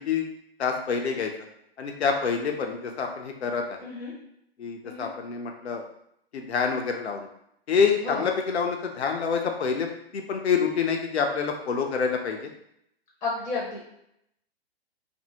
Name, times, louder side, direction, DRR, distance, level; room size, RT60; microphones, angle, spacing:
voice 1, 0.6-1.3 1.8-3.8 4.6-5.8 6.3-7.3 7.7-12.5, left 6 dB, 85° left, 3 dB, 0.5 m, -27 dB
voice 2, 3.8-4.1 4.8-5.1 8.0-8.2 13.2-13.8, left 3 dB, 10° left, -5 dB, 0.5 m, -31 dB
2.6 x 2.6 x 2.8 m, 0.76 s
hypercardioid pair, 125°, 32 cm